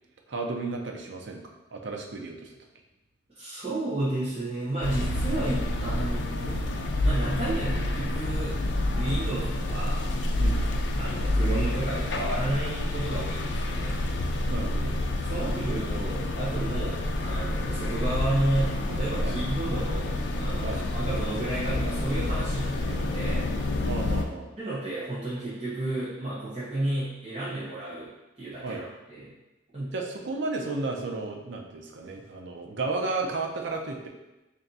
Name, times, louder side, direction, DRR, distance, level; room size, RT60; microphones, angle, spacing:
voice 1, 0.3-2.6 10.4-10.7 14.5-15.0 19.2-19.3 20.6-20.8 23.9-24.5 28.6-28.8 29.9-34.1, right 3 dB, 85° right, 2 dB, 0.6 m, -33 dB
voice 2, 3.3-6.6 7.0-8.6 8.9-10.0 11.0-13.9 14.8-14.9 15.2-23.5 24.6-29.3 29.7-29.9, right 1 dB, 30° right, -12 dB, 1.0 m, -32 dB
sound 1, 4.8-24.2, left 1 dB, 80° left, 0.4 m, -28 dB
3.4 x 2.6 x 4.0 m, 1.0 s
head